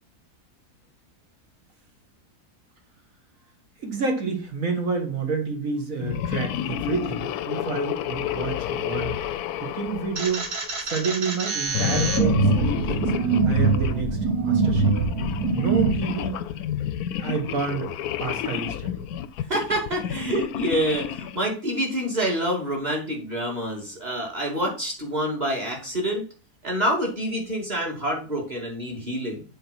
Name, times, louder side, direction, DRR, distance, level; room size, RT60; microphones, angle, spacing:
voice 1, 3.8-9.2 9.6-10.5 10.8-14.9 15.5-16.4 17.2-17.9 18.2-18.9, right 5 dB, 60° right, 3 dB, 1.8 m, -29 dB
sound 1, 6.0-10.8 11.7-14.0 14.6-21.5, left 10 dB, 75° left, 1.0 m, -30 dB
sound 2, 10.2-15.9, right 4 dB, 85° right, 2.2 m, -23 dB
voice 2, 19.5-26.2 26.6-29.4, right 1 dB, 25° right, -1 dB, 2.7 m, -27 dB
7.5 x 4.3 x 5.7 m, 0.36 s
omnidirectional pair, 1.7 m